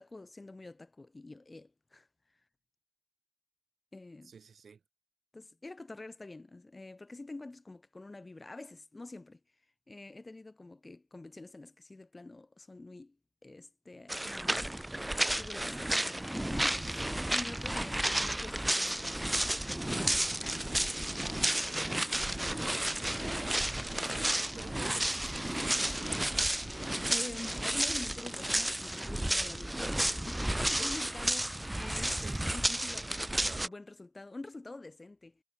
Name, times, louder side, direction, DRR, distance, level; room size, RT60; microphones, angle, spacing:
voice 1, 0.0-2.4 3.9-4.3 5.3-9.4 9.9-13.2 13.4-14.7 15.3-22.7 27.1-32.2 32.5-35.4, left 2 dB, 30° left, 4.1 m, -47 dB
voice 2, 4.2-4.8 24.1-26.3 32.1-32.4 33.4-33.7, right 6 dB, 75° right, 4.4 m, -50 dB
sound 1, 14.1-33.7, right 1 dB, 15° right, 1.0 m, -32 dB
cardioid pair, 65°, 0 cm